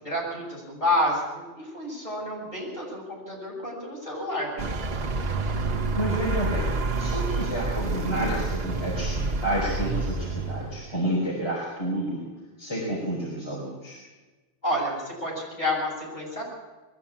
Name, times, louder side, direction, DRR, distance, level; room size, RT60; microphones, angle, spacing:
voice 1, 0.0-4.7 14.6-16.5, left 1 dB, 40° left, -4 dB, 8.1 m, -29 dB
Vehicle, 4.6-11.0, right 3 dB, 55° right, 1.5 m, -28 dB
voice 2, 6.0-12.2 12.6-14.0, right 1 dB, 25° left, -5 dB, 4.9 m, -30 dB
21.5 x 14.5 x 8.8 m, 1.2 s
omnidirectional pair, 1.2 m